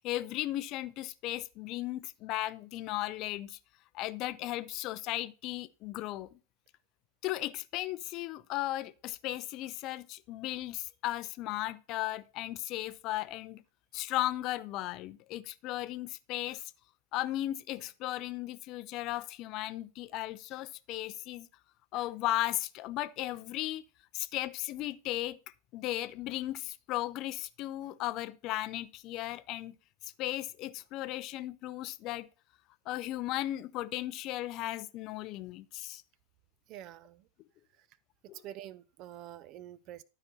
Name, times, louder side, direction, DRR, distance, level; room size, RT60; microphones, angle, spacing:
voice 1, 0.0-3.6 3.9-6.3 7.2-13.6 13.9-16.6 17.1-21.5 21.9-23.8 24.1-25.4 25.7-29.7 30.0-32.3 32.9-36.0 38.3-38.4, left 15 dB, 40° left, 0.5 m, -36 dB
voice 2, 36.7-37.2 38.4-40.0, right 12 dB, 40° right, 0.6 m, -46 dB
12.0 x 4.9 x 4.2 m
figure-of-eight pair, 90°, 0 cm